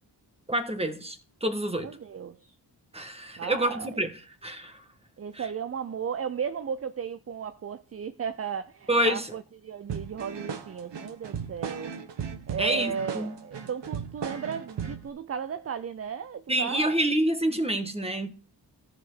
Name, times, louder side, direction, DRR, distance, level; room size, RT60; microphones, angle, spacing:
voice 1, 0.5-1.9 2.9-4.1 4.4-4.8 5.3-5.4 8.9-9.3 12.6-13.4 16.5-18.3, right 1 dB, 15° right, 1.6 m, -27 dB
voice 2, 1.8-2.5 3.4-3.9 5.2-11.9 12.5-17.0, right 7 dB, 35° right, 0.5 m, -35 dB
sound 1, 9.9-15.1, right 7 dB, 75° right, 1.4 m, -36 dB
14.0 x 5.1 x 6.5 m
wide cardioid pair, 100°, 42 cm